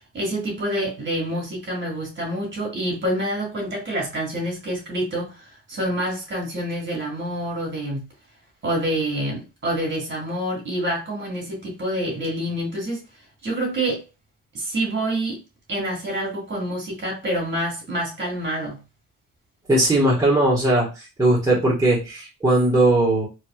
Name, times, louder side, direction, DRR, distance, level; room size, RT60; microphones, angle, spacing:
voice 1, 0.1-8.0 8.6-13.0 13.4-14.0 14.5-15.4 15.7-18.8, right 1 dB, 40° right, 2.0 m, -27 dB
voice 2, 19.7-23.3, right 1 dB, 10° right, 1.6 m, -19 dB
4.0 x 3.1 x 2.4 m
cardioid pair, 90°, 30 cm